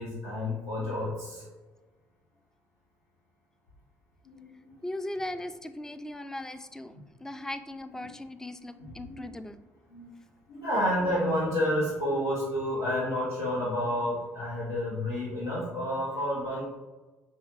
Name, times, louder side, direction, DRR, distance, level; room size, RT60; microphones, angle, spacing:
voice 1, 0.0-1.5 4.2-4.8 6.9-7.0 7.3-7.4 8.0-8.1 8.8-9.2 9.9-10.1 10.5-16.6, left 1 dB, 85° left, -8 dB, 0.9 m, -30 dB
voice 2, 4.8-9.6, left 1 dB, 5° left, 10 dB, 0.3 m, -38 dB
5.4 x 2.2 x 3.1 m, 1.2 s
hypercardioid pair, 55°, 8 cm